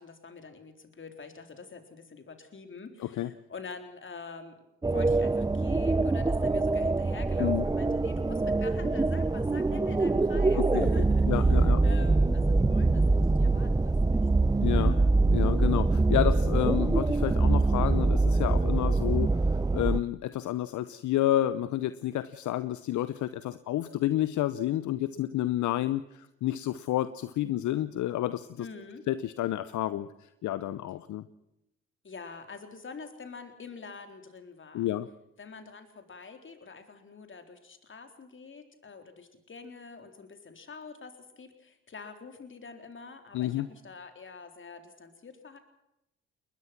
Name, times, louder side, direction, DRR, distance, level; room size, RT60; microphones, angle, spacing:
voice 1, 0.0-11.6 11.8-15.1 28.6-29.1 32.0-34.9 35.4-45.6, left 4 dB, 40° left, 7 dB, 3.9 m, -46 dB
sound 1, 4.8-20.0, right 3 dB, 10° right, 0.7 m, -24 dB
voice 2, 10.6-11.8 14.6-15.0 15.3-28.7 29.1-31.3 34.7-35.1 43.3-43.7, left 13 dB, 65° left, 14 dB, 0.9 m, -30 dB
21.5 x 20.5 x 6.0 m, 0.89 s
supercardioid pair, 60°, 32 cm